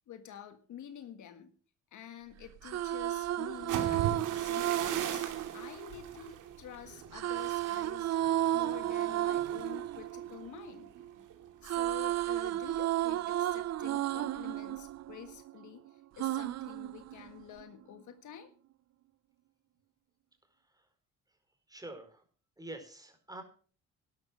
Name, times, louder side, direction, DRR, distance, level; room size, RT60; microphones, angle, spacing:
voice 1, 0.0-1.5 1.9-8.2 8.5-10.9 11.6-18.5, left 10 dB, 75° left, 9 dB, 1.8 m, -49 dB
sound 1, 2.4-6.5 7.1-11.2 11.4-15.7 16.2-17.6, right 13 dB, 60° right, 0.6 m, -33 dB
sound 2, 3.5-11.4 11.7-12.1 12.4-12.8, right 9 dB, 90° right, 2.8 m, -41 dB
voice 2, 20.5-20.9 21.7-22.2 22.6-23.4, right 2 dB, 10° right, 5 dB, 4.7 m, -47 dB
12.0 x 11.5 x 6.3 m, 0.42 s
cardioid pair, 90°, 30 cm